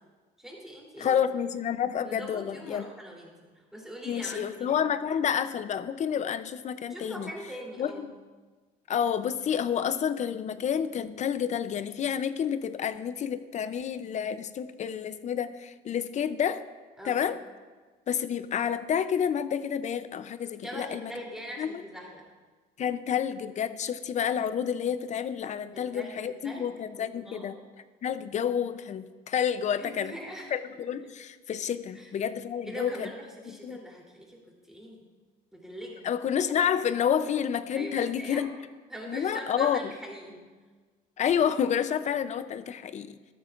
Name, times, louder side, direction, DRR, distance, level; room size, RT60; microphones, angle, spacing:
voice 1, 0.4-1.2 2.0-4.8 6.9-8.1 17.0-17.2 20.6-22.2 25.7-26.7 27.0-27.6 29.8-30.5 31.9-32.1 32.7-35.0 35.5-36.0 37.7-38.5 38.9-40.5, equal, 5° right, -3 dB, 3.2 m, -42 dB
voice 2, 1.0-2.8 4.1-7.3 7.8-8.1 8.9-16.6 17.0-17.4 18.1-21.1 21.6-21.8 22.8-27.6 28.0-30.1 30.5-33.1 33.5-33.8 36.0-38.5 39.1-39.9 41.2-43.2, left 8 dB, 45° left, 13 dB, 0.6 m, -29 dB
14.0 x 13.0 x 2.5 m, 1.4 s
cardioid pair, 110°, 17 cm